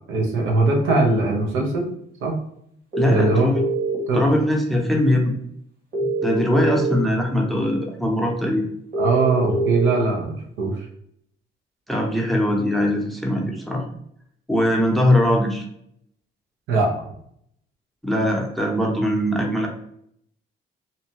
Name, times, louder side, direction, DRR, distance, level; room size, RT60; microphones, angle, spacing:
voice 1, 0.1-1.9 2.2-2.4 3.1-3.5 4.1-4.3 9.0-10.9 16.7-16.9, right 3 dB, 90° right, 1 dB, 0.7 m, -21 dB
sound 1, 0.9-1.0 2.9-4.1 5.9-6.9 8.9-9.9, right 3 dB, 50° right, 1.2 m, -24 dB
voice 2, 3.0-3.6 4.1-5.2 6.2-8.7 11.9-13.8 14.5-15.6 18.0-19.7, left 1 dB, ahead, -1 dB, 0.6 m, -21 dB
2.7 x 2.1 x 2.8 m, 0.70 s
cardioid pair, 90°, 20 cm